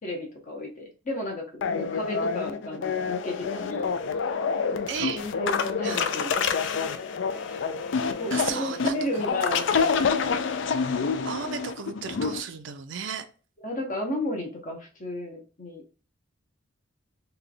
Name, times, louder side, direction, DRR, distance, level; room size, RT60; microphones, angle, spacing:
voice 1, 0.0-3.9 5.0-7.1 7.5-7.6 8.1-10.3 13.6-15.8, left 1 dB, 40° left, 2 dB, 0.8 m, -33 dB
sound 1, 1.6-12.4, left 5 dB, 65° left, 0.4 m, -27 dB
voice 2, 4.9-5.2 5.8-6.1 8.3-8.9 11.2-13.3, right 7 dB, 65° right, 8 dB, 0.5 m, -34 dB
3.3 x 2.2 x 3.7 m, 0.37 s
head